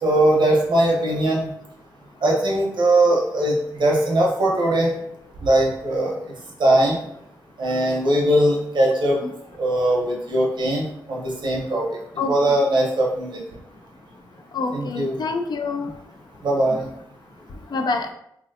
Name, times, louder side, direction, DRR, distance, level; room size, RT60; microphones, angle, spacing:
voice 1, 0.0-1.4 2.2-4.9 5.4-6.2 6.6-7.0 7.6-9.2 9.6-11.9 12.3-13.4 14.7-15.2 16.4-16.9, right 1 dB, 75° right, -2 dB, 0.9 m, -20 dB
voice 2, 14.5-15.9 17.7-18.1, left 4 dB, 60° left, 5 dB, 0.4 m, -26 dB
3.0 x 2.7 x 2.6 m, 0.75 s
cardioid pair, 50°, 8 cm